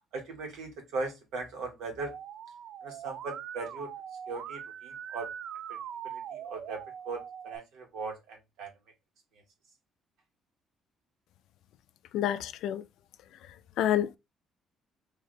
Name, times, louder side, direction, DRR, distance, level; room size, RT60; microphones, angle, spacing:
voice 1, 0.1-2.1 2.8-3.9 4.3-5.3 5.7-5.8 6.0-8.7, right 3 dB, 80° right, 1.4 m, -39 dB
Musical instrument, 2.0-7.6, right 9 dB, 55° right, 0.3 m, -42 dB
voice 2, 12.1-12.8 13.8-14.2, left 11 dB, 75° left, 0.3 m, -28 dB
3.2 x 2.7 x 4.1 m
cardioid pair, 165°, 0 cm